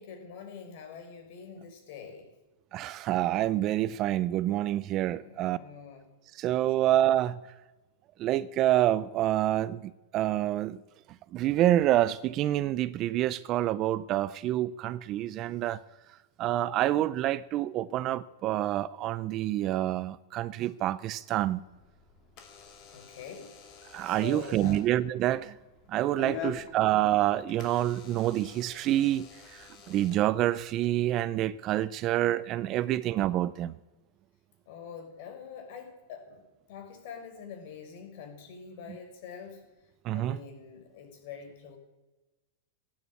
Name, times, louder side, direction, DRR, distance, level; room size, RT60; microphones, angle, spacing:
voice 1, 0.0-2.3 5.0-6.1 6.8-6.9 22.9-23.5 24.0-24.8 26.2-26.6 34.7-36.4 36.7-39.6 40.1-41.8, left 7 dB, 55° left, 5.3 m, -45 dB
voice 2, 2.7-5.6 6.4-7.4 8.2-10.8 11.3-15.8 16.4-21.6 23.9-25.6 25.9-33.7 40.0-40.4, right 13 dB, 30° right, 0.5 m, -27 dB
Door / Alarm, 21.6-30.9, left 9 dB, 35° left, 2.7 m, -47 dB
16.5 x 9.5 x 8.6 m
supercardioid pair, 150°, 0 cm